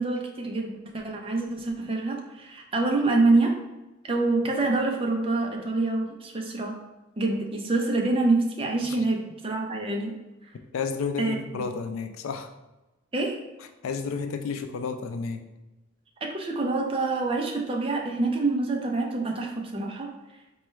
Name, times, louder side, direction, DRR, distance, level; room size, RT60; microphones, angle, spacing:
voice 1, 0.0-3.6 4.1-6.8 7.2-10.2 11.2-11.6 13.1-13.4 16.2-20.1, right 3 dB, 25° right, 1 dB, 0.5 m, -26 dB
voice 2, 10.7-12.5 13.8-15.5, left 5 dB, 90° left, 7 dB, 0.4 m, -31 dB
4.3 x 2.3 x 3.1 m, 1.0 s
head